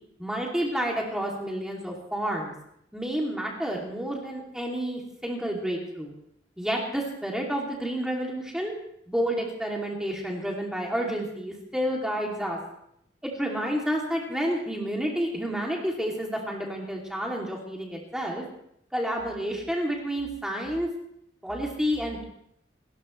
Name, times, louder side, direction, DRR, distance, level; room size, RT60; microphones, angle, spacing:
voice 1, 0.2-2.5 2.9-6.1 6.6-8.7 9.1-12.6 13.2-18.4 18.9-20.9 21.4-22.2, equal, 5° right, -2 dB, 2.8 m, -30 dB
28.5 x 14.5 x 3.3 m, 0.73 s
head